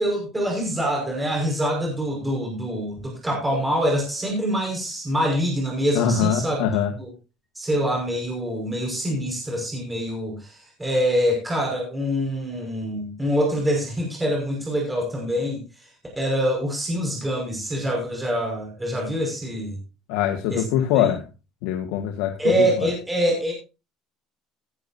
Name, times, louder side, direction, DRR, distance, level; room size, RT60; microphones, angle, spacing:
voice 1, 0.0-6.6 7.0-7.1 7.6-15.6 16.2-19.8 20.5-20.6 20.9-21.1 22.4-23.5, equal, 10° right, 0 dB, 5.6 m, -25 dB
voice 2, 6.0-6.9 20.1-21.2 21.6-22.3, left 9 dB, 85° left, 4 dB, 1.7 m, -22 dB
16.5 x 11.0 x 2.7 m, 0.29 s
cardioid pair, 145°, 0 cm